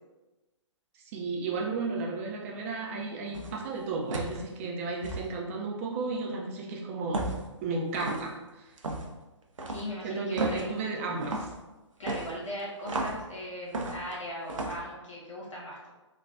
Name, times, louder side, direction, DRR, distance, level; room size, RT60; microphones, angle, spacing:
voice 1, 0.9-7.2 7.6-8.8 10.0-11.5, right 3 dB, 25° right, -1 dB, 0.4 m, -33 dB
sound 1, 3.3-3.6 4.1-4.4 5.0-5.3 7.1-7.5 7.9-8.3 8.8-9.1 9.6-9.9 10.4-10.7 11.2-11.5 12.1-13.2 13.7-14.2 14.5-14.8, right 2 dB, 90° right, 0.5 m, -33 dB
voice 2, 9.7-10.8 12.0-15.8, equal, 75° left, -5 dB, 1.4 m, -39 dB
3.2 x 2.3 x 2.6 m, 1.1 s
figure-of-eight pair, 135°, 16 cm